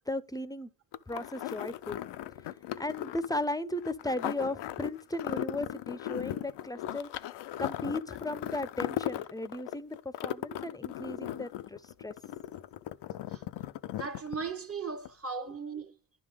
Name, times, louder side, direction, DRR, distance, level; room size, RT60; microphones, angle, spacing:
voice 1, 0.1-0.7 1.1-2.0 2.8-7.2 7.6-12.2, left 1 dB, 10° left, 0.6 m, -36 dB
sound 1, 0.9-14.7 15.1-15.2, left 13 dB, 75° left, 0.5 m, -37 dB
voice 2, 13.9-16.2, right 5 dB, 35° right, 1.0 m, -38 dB
11.0 x 3.8 x 5.0 m
supercardioid pair, 55°, 42 cm